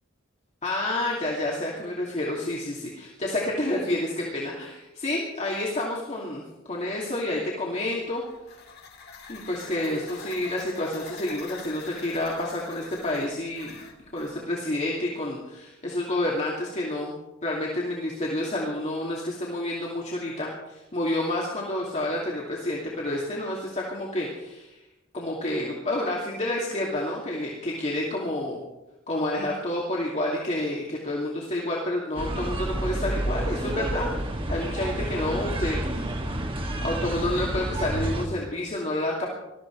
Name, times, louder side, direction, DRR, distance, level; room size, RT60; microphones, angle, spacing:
voice 1, 0.6-8.2 9.3-13.8 14.1-17.2 17.4-24.8 25.1-28.6 29.1-36.2 36.8-39.3, left 1 dB, 35° left, -4 dB, 2.6 m, -29 dB
sound 1, 8.1-14.3, left 5 dB, 50° left, 2.3 m, -44 dB
sound 2, 32.1-38.3, right 1 dB, 25° right, 1.7 m, -29 dB
20.5 x 13.5 x 4.7 m, 0.97 s
head